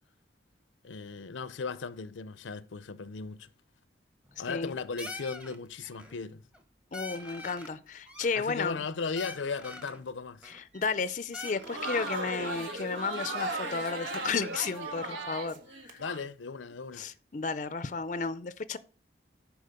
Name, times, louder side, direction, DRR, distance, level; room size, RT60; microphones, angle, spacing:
voice 1, 0.8-3.5 4.4-6.4 8.3-10.5 16.0-17.1, left 4 dB, 90° left, 0.6 m, -37 dB
sound 1, 4.3-4.7 5.0-5.6 5.8-6.2 6.5-6.6 6.9-7.8 8.1-8.8 9.2-10.0 10.4-11.0 11.3-12.2, left 2 dB, 5° right, 0.9 m, -44 dB
voice 2, 4.4-4.7 6.9-8.8 10.4-16.0 16.9-18.8, left 4 dB, 40° left, 0.4 m, -33 dB
Crowd, 11.4-16.2, right 2 dB, 90° right, 1.5 m, -36 dB
10.5 x 4.9 x 5.1 m
head